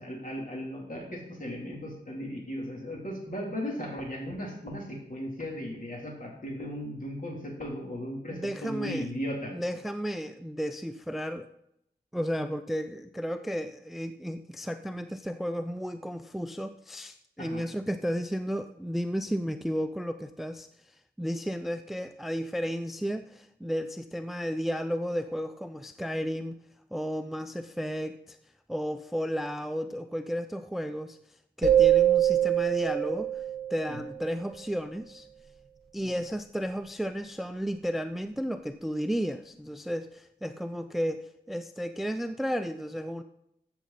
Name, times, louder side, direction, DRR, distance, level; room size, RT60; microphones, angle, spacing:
voice 1, 0.0-9.5 17.4-17.6 33.9-34.0, equal, 45° left, -2 dB, 3.5 m, -36 dB
voice 2, 8.3-9.1 9.5-11.5 12.1-26.6 26.9-28.4 28.7-33.4 33.7-35.3 35.9-43.2, equal, ahead, 10 dB, 0.4 m, -33 dB
sound 1, 31.6-34.3, right 11 dB, 60° right, 1.5 m, -24 dB
14.0 x 7.3 x 4.3 m, 0.78 s
wide cardioid pair, 65°, 18 cm